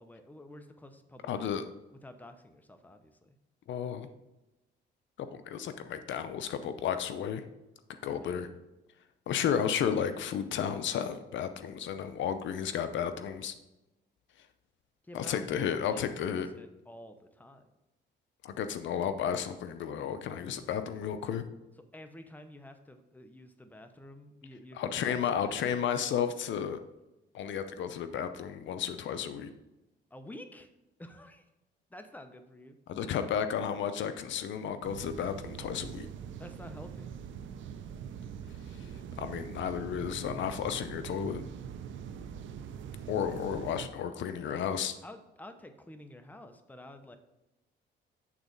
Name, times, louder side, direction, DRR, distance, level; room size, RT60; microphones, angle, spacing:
voice 1, 0.0-1.7 2.0-3.3 8.0-8.5 15.0-17.7 21.9-25.6 30.1-30.7 31.0-31.4 31.9-32.8 36.4-37.1 45.0-47.2, left 1 dB, 10° left, 8 dB, 0.8 m, -50 dB
voice 2, 1.3-1.6 3.7-4.1 5.2-7.4 8.0-8.5 9.3-13.5 15.1-16.5 18.4-21.4 24.7-26.8 27.3-29.5 32.9-36.1 38.8-38.9 39.2-41.4 43.1-44.9, left 8 dB, 70° left, 10 dB, 0.6 m, -33 dB
sound 1, 34.8-43.9, right 8 dB, 75° right, 0.7 m, -43 dB
8.5 x 3.9 x 5.2 m, 0.98 s
cardioid pair, 90°, 20 cm